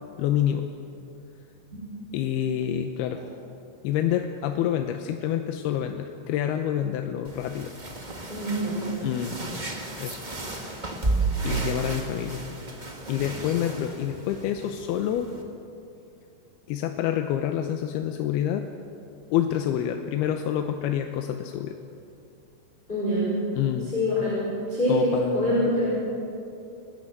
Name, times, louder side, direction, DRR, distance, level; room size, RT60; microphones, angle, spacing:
voice 1, 0.2-0.7 2.1-3.2 3.8-7.7 9.0-9.4 10.0-10.2 10.6-11.1 11.4-12.5 13.1-15.3 16.7-18.7 19.3-21.8 23.6-23.9 24.9-25.7, left 10 dB, 90° left, 6 dB, 2.8 m, -27 dB
sound 1, 7.2-15.4, right 3 dB, 30° right, 0.8 m, -33 dB
voice 2, 8.3-8.9 22.9-23.3 23.9-24.4 24.7-25.9, left 1 dB, 10° left, -9 dB, 6.1 m, -24 dB
29.0 x 12.0 x 7.9 m, 2.6 s
omnidirectional pair, 4.4 m